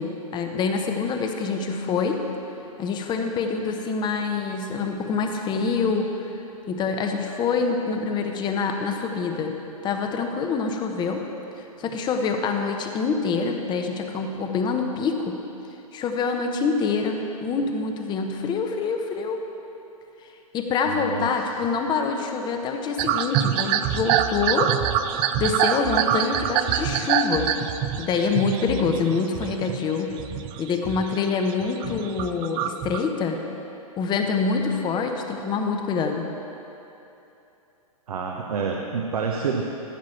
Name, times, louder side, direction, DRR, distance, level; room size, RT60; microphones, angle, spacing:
voice 1, 0.0-2.2 2.8-9.6 9.8-11.3 11.8-15.4 15.9-19.5 20.5-24.8 25.4-27.5 28.0-30.2 30.6-33.4 34.0-36.3, left 5 dB, 25° left, 4 dB, 0.8 m, -26 dB
voice 2, 20.9-21.3 38.1-39.6, right 5 dB, 75° right, 1 dB, 0.9 m, -28 dB
sound 1, 23.0-29.8 30.1-31.2 31.5-33.0, right 10 dB, 25° right, 0.4 m, -25 dB
14.5 x 6.2 x 4.3 m, 2.9 s
hypercardioid pair, 120°, 19 cm